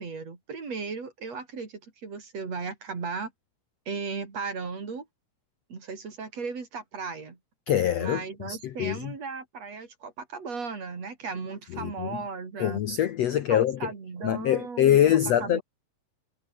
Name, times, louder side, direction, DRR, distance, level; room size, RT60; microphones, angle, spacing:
voice 1, 0.0-3.3 3.9-5.1 5.7-7.4 8.0-12.8 13.5-15.0 15.4-15.6, right 4 dB, 40° right, 4.9 m, -36 dB
voice 2, 7.7-9.1 11.7-12.2 12.6-13.9 14.2-15.6, left 11 dB, 75° left, 1.5 m, -24 dB
omnidirectional pair, 4.5 m